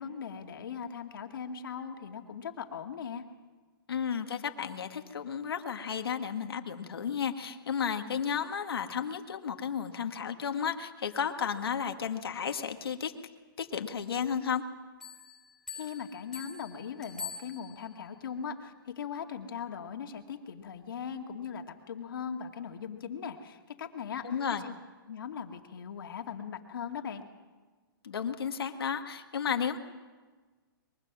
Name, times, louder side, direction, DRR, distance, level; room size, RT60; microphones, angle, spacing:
voice 1, 0.0-3.2 15.7-24.7 25.1-27.2, left 7 dB, 65° left, 4 dB, 2.4 m, -39 dB
voice 2, 3.9-13.1 13.6-14.6 24.2-24.6 28.0-29.8, left 7 dB, 85° left, 6 dB, 1.8 m, -33 dB
Bell, 15.0-18.1, left 6 dB, 5° left, 2.7 m, -45 dB
23.5 x 22.5 x 6.2 m, 1.4 s
hypercardioid pair, 160°, 12 cm